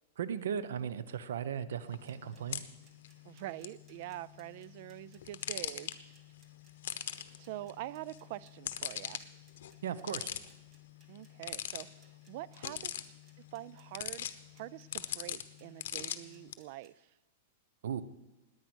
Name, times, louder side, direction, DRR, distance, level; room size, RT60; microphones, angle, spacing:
voice 1, 0.2-2.6 9.8-10.3 17.8-18.0, right 8 dB, 90° right, 16 dB, 0.9 m, -37 dB
sound 1, 1.8-16.5, left 10 dB, 70° left, 1.0 m, -43 dB
sound 2, 2.0-16.9, right 3 dB, 20° right, 2.0 m, -67 dB
voice 2, 3.2-5.9 7.4-9.2 11.1-12.9 13.4-14.3 14.6-16.9, right 16 dB, 50° right, 21 dB, 0.4 m, -45 dB
19.0 x 9.4 x 6.2 m, 1.0 s
supercardioid pair, 160°, 0 cm